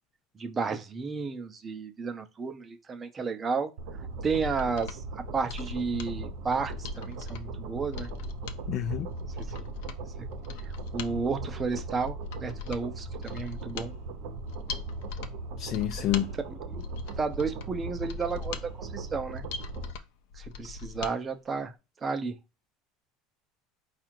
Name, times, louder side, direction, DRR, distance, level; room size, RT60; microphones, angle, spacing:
voice 1, 0.4-3.7 4.2-8.1 9.2-9.5 10.2-10.3 10.9-13.9 16.5-16.8 17.2-19.5 20.4-21.7 22.0-22.4, right 5 dB, 20° right, 0.6 m, -32 dB
sound 1, 3.8-19.9, right 3 dB, 60° right, 0.8 m, -39 dB
Mechanisms, 4.1-21.2 21.5-21.6, left 5 dB, 75° left, 0.7 m, -41 dB
voice 2, 8.7-9.1 15.6-16.3, left 11 dB, 40° left, 0.4 m, -28 dB
4.8 x 2.5 x 4.4 m
cardioid pair, 160°, 0 cm